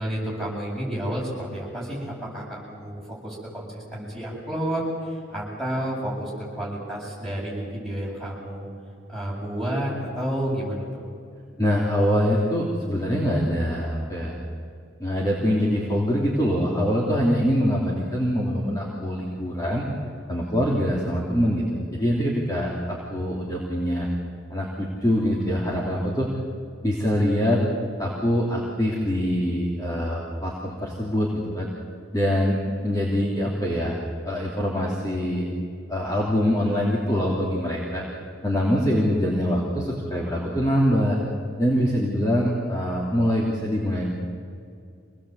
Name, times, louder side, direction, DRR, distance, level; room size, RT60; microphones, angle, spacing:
voice 1, 0.0-2.0 2.3-8.7 9.1-11.1, right 1 dB, ahead, -5 dB, 8.0 m, -30 dB
voice 2, 11.6-14.3 15.0-19.8 20.3-24.1 24.5-26.3 26.8-27.6 28.0-31.7 32.1-34.0 34.2-35.4 35.9-38.0 38.4-41.2 41.6-44.0, equal, 20° left, -4 dB, 3.0 m, -24 dB
26.0 x 19.0 x 8.1 m, 2.3 s
head